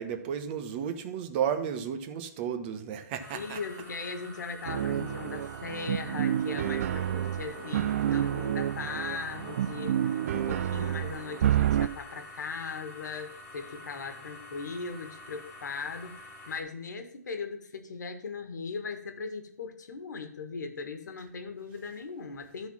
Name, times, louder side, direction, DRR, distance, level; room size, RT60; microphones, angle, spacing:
voice 1, 0.0-3.6, right 8 dB, 35° right, 9 dB, 1.0 m, -33 dB
sound 1, 3.2-16.6, left 1 dB, 20° left, 1.9 m, -48 dB
voice 2, 3.3-22.7, left 5 dB, 80° left, 8 dB, 1.6 m, -39 dB
sound 2, 4.7-11.9, right 10 dB, 55° right, 0.5 m, -29 dB
12.5 x 4.3 x 7.3 m, 0.63 s
hypercardioid pair, 150°, 10 cm